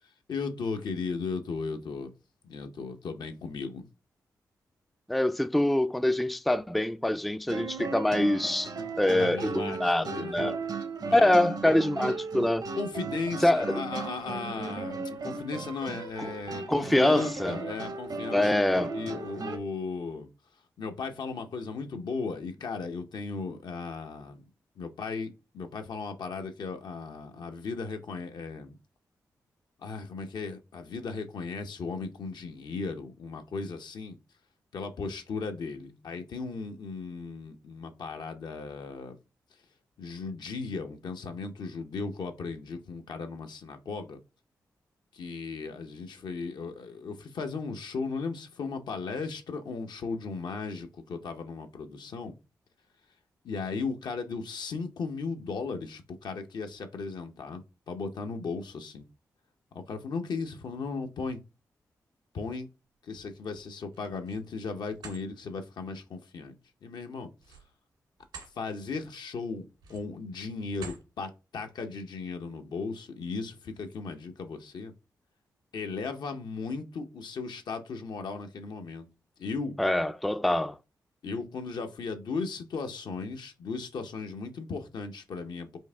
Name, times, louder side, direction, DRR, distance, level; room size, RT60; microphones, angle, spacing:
voice 1, 0.3-2.1 2.4-3.9 9.2-10.4 11.0-11.4 12.8-18.6 18.9-20.3 20.8-24.4 24.8-28.8 29.8-34.2 34.7-39.2 40.0-44.2 45.1-52.3 53.4-59.0 59.7-61.4 62.3-62.7 63.0-67.3 68.6-74.9 75.7-79.1 79.4-79.8 81.2-85.8, left 4 dB, 70° left, 0.7 m, -36 dB
voice 2, 5.1-8.7 9.0-10.6 11.1-12.6 13.4-13.7 16.2-16.3 16.7-17.6 18.3-18.9 79.8-80.7, left 1 dB, ahead, 0.3 m, -25 dB
sound 1, 7.5-19.6, right 4 dB, 60° right, 0.8 m, -36 dB
sound 2, 63.9-64.5 64.9-65.2 67.4-68.5 69.0-69.2 69.7-70.2 70.7-71.1, right 4 dB, 85° right, 1.9 m, -47 dB
4.5 x 2.7 x 3.3 m
supercardioid pair, 45°, 8 cm